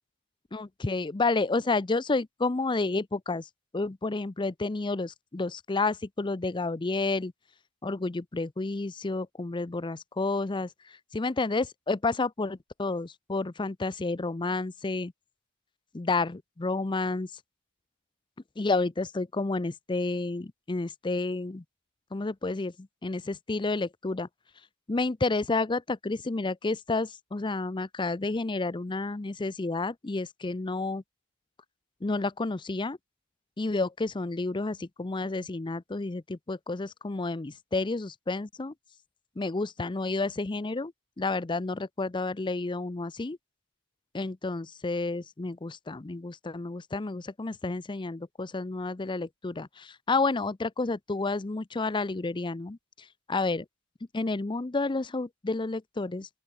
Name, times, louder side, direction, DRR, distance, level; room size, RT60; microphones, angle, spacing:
voice 1, 0.5-3.5 3.7-7.3 7.8-15.1 15.9-17.3 18.6-21.6 22.1-24.3 24.9-31.0 32.0-33.0 33.6-38.7 39.4-40.9 41.2-43.4 44.1-53.7 54.1-56.3, left 3 dB, 20° left, 0.5 m, -30 dB
open air
head